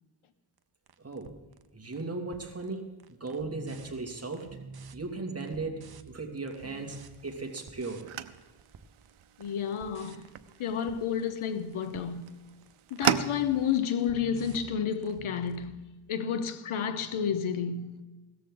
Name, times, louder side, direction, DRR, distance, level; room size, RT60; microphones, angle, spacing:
sound 1, 0.6-0.7 0.9-2.1 2.3-2.7 3.0-15.8, right 4 dB, 50° right, 0.9 m, -48 dB
voice 1, 1.0-1.3 1.7-4.6 4.9-8.1, right 3 dB, 30° right, 2.4 m, -37 dB
sound 2, 6.6-13.8, right 10 dB, 90° right, 0.8 m, -37 dB
voice 2, 9.4-10.2 10.6-12.3 12.9-15.8 16.1-18.0, left 7 dB, 85° left, 1.1 m, -31 dB
17.0 x 13.5 x 3.9 m
wide cardioid pair, 90°, 48 cm